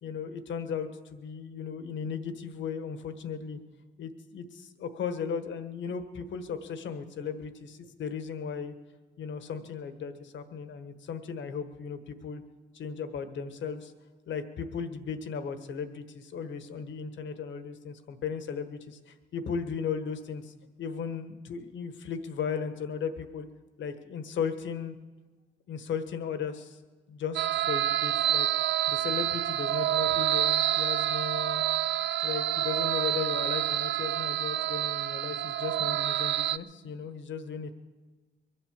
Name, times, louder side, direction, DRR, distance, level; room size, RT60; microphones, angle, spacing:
voice 1, 0.0-3.6 4.0-8.7 9.2-12.4 12.7-13.9 14.3-23.5 23.8-25.0 25.7-26.8 27.1-28.5 28.9-31.6 32.2-37.7, left 6 dB, 70° left, 9 dB, 1.5 m, -36 dB
sound 1, 27.4-36.6, right 12 dB, 65° right, 0.5 m, -28 dB
22.5 x 8.0 x 7.6 m, 1.3 s
cardioid pair, 90°, 20 cm